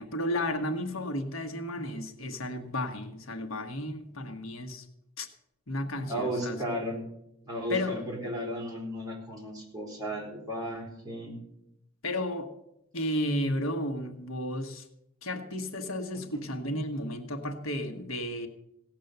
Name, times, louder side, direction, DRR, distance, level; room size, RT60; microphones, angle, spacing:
voice 1, 0.0-4.8 5.2-5.3 5.7-6.6 7.7-8.0 12.0-12.5 12.9-14.8 15.2-18.5, left 1 dB, 70° left, 5 dB, 1.3 m, -33 dB
voice 2, 6.1-7.0 7.4-11.4 16.1-16.4, equal, 20° right, -3 dB, 3.9 m, -35 dB
17.0 x 7.4 x 6.7 m, 0.82 s
head